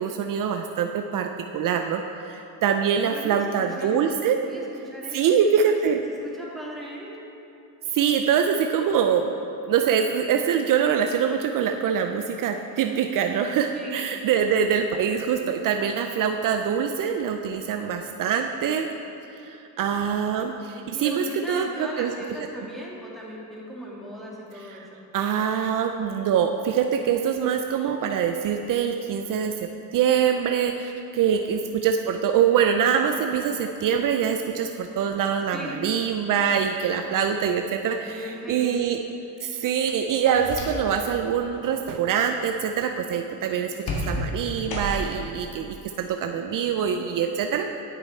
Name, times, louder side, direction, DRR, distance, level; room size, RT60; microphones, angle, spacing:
voice 1, 0.0-4.4 5.1-6.0 7.9-9.4 9.7-18.9 19.3-22.1 24.7-24.8 25.1-39.0 39.4-43.7 44.0-47.7, right 7 dB, 60° right, 5 dB, 0.5 m, -24 dB
voice 2, 2.9-4.0 4.4-5.4 5.6-7.2 13.7-14.0 20.9-25.0 31.3-31.9 35.5-35.7 38.1-38.8, equal, ahead, -5 dB, 2.2 m, -38 dB
sound 1, 40.1-41.1 41.4-41.8 43.9-45.3, left 1 dB, 70° left, 2.0 m, -31 dB
10.5 x 6.7 x 4.4 m, 2.8 s
cardioid pair, 90°, 37 cm